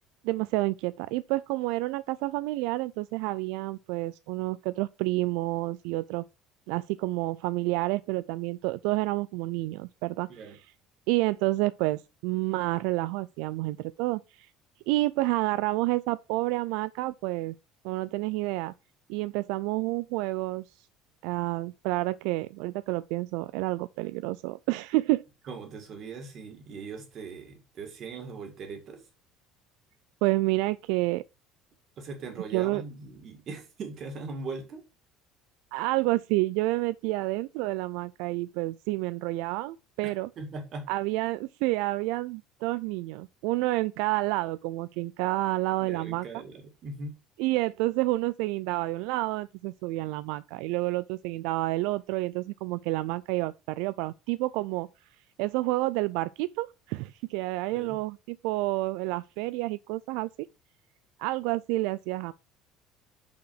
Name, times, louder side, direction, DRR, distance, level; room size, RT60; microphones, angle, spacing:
voice 1, 0.2-6.2 6.7-10.3 11.1-14.5 14.9-17.6 17.8-18.7 19.1-20.7 21.2-25.2 30.2-31.2 32.5-32.8 35.7-40.3 40.9-46.2 47.4-54.9 55.4-60.3 61.2-62.3, right 20 dB, 75° right, 0.4 m, -29 dB
voice 2, 25.5-29.1 32.0-34.8 40.0-40.9 45.8-47.2 57.7-58.0, right 4 dB, 35° right, 1.9 m, -40 dB
6.2 x 5.8 x 5.8 m
cardioid pair, 175°, 0 cm